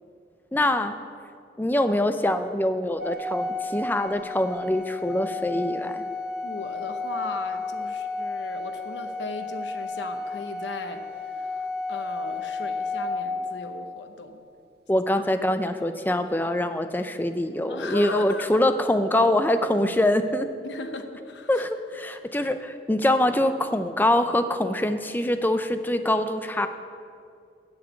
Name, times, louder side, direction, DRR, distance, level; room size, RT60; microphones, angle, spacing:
voice 1, 0.5-0.9 1.6-6.0 14.9-20.5 21.5-26.7, left 1 dB, 10° left, 9 dB, 0.4 m, -24 dB
Organ, 3.0-13.8, left 3 dB, 65° right, 1.0 m, -32 dB
voice 2, 6.4-14.5 15.2-15.3 15.7-16.0 17.7-18.6 20.6-21.6, left 3 dB, 85° left, 7 dB, 0.9 m, -37 dB
9.4 x 7.2 x 8.1 m, 2.4 s
head